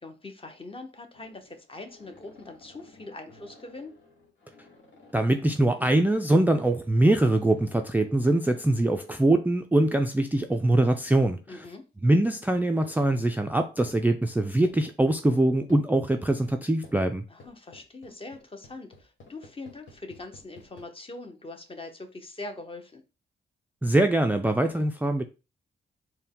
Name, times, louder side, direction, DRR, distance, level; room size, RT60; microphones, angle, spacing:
voice 1, 0.0-3.9 11.5-11.9 17.3-23.0, left 2 dB, 30° left, 0.8 m, -42 dB
sound 1, 1.1-9.2 10.5-11.6 12.5-13.3 13.9-14.0 14.6-15.0 15.3-15.8 16.4-16.6 16.8-17.0 17.4-20.8, left 3 dB, 80° left, 1.3 m, -53 dB
voice 2, 5.1-11.6 12.0-17.2 23.8-25.2, right 1 dB, 10° right, 0.4 m, -23 dB
4.2 x 2.2 x 3.6 m
cardioid pair, 75°, 19 cm